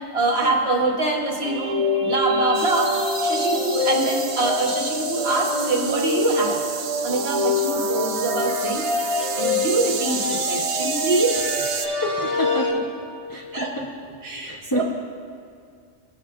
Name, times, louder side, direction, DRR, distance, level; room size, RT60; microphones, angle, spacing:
voice 1, 0.1-6.6 7.0-8.9 9.3-11.5 13.5-13.7 14.2-14.8, right 2 dB, 55° right, -1 dB, 1.5 m, -24 dB
sound 1, 1.4-12.7, left 2 dB, 25° right, 1.2 m, -25 dB
sound 2, 2.5-11.9, right 8 dB, 80° right, 1.0 m, -32 dB
voice 2, 11.7-12.9 13.3-13.9 14.3-14.8, equal, 20° left, -4 dB, 0.7 m, -29 dB
17.5 x 6.3 x 2.5 m, 2.3 s
omnidirectional pair, 1.3 m